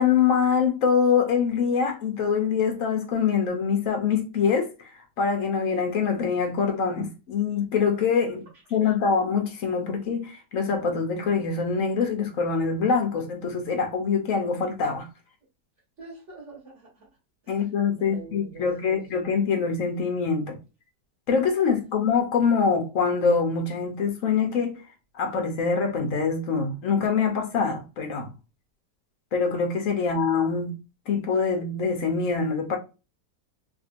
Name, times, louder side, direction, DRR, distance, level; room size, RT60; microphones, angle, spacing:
voice 1, 0.0-4.9 5.2-8.4 8.7-15.1 17.5-20.6 21.3-24.8 25.1-28.3 29.3-30.8 31.1-32.8, left 5 dB, 60° left, 1.0 m, -24 dB
voice 2, 16.0-17.1 17.4-17.6 18.0-19.0 30.0-30.1, right 2 dB, 45° right, 1.8 m, -45 dB
3.6 x 2.6 x 2.5 m
omnidirectional pair, 1.9 m